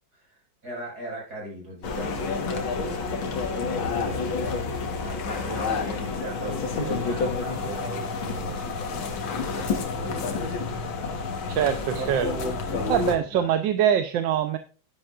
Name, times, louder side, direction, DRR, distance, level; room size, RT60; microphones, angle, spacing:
voice 1, 0.1-11.7 12.0-13.5, right 1 dB, 50° right, -2 dB, 6.1 m, -39 dB
sound 1, 1.8-13.2, left 4 dB, 80° left, 2.2 m, -29 dB
voice 2, 11.5-12.3 12.9-14.6, right 9 dB, 70° right, 9 dB, 1.4 m, -23 dB
11.5 x 10.0 x 2.5 m, 0.36 s
omnidirectional pair, 2.2 m